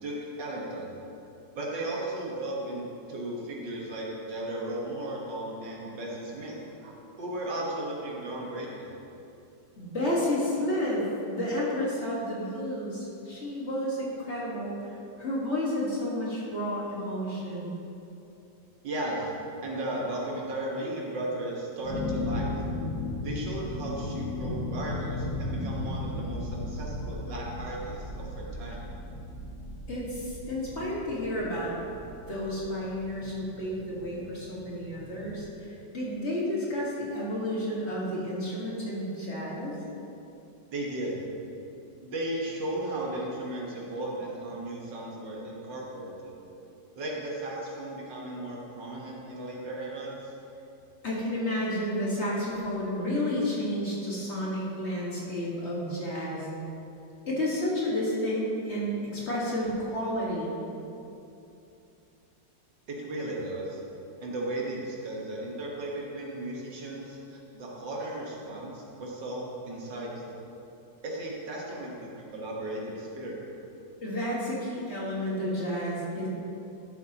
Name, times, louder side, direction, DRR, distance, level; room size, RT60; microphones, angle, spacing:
voice 1, 0.0-0.9 1.6-9.0 18.8-19.3 19.6-22.5 23.2-28.9 40.7-41.2 42.0-46.3 47.0-50.3 62.9-63.8 64.2-70.4 71.0-73.4, right 1 dB, 80° right, -3 dB, 2.1 m, -35 dB
voice 2, 9.8-17.7 29.9-31.8 32.3-39.8 51.0-56.5 57.3-60.5 74.0-76.3, left 1 dB, 40° left, -6 dB, 1.9 m, -31 dB
sound 1, 21.8-35.5, left 2 dB, 85° left, 2.2 m, -36 dB
11.5 x 7.8 x 2.9 m, 2.9 s
omnidirectional pair, 1.9 m